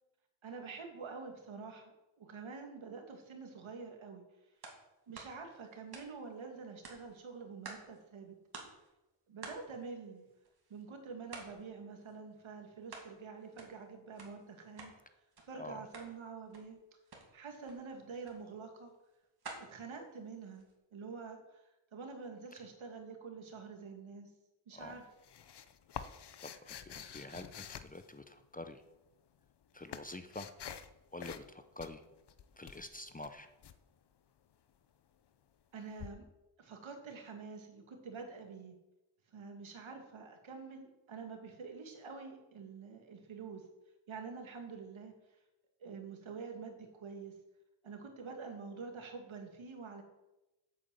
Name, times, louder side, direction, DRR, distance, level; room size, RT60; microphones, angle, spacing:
voice 1, 0.4-4.2 5.1-8.4 9.3-10.3 10.7-14.9 15.4-16.8 17.3-18.9 19.7-20.7 20.9-24.3 24.7-25.0 35.7-36.2 36.6-38.7 39.3-43.6 44.1-45.1 45.8-47.3 47.8-50.0, right 5 dB, 70° right, 4 dB, 2.3 m, -47 dB
sound 1, 4.6-4.8 5.1-6.4 6.8-8.0 8.3-8.4 8.5-8.9 9.4-10.8 11.3-11.6 12.0-13.1 13.4-15.0 15.3-15.5 15.8-16.1 16.5-16.7 17.1-17.3 17.6-17.8 18.2-18.4 18.9-20.7, right 3 dB, 50° right, 2.6 m, -51 dB
sound 2, 24.8-28.6 29.4-30.9 31.2-31.5 31.8-33.8 36.0-36.1, left 8 dB, 55° left, 0.8 m, -48 dB
voice 2, 26.4-28.8 29.7-30.5 31.1-32.0 32.6-33.5, left 2 dB, 15° left, 8 dB, 0.6 m, -47 dB
8.3 x 8.2 x 7.7 m, 1.0 s
wide cardioid pair, 125°, 48 cm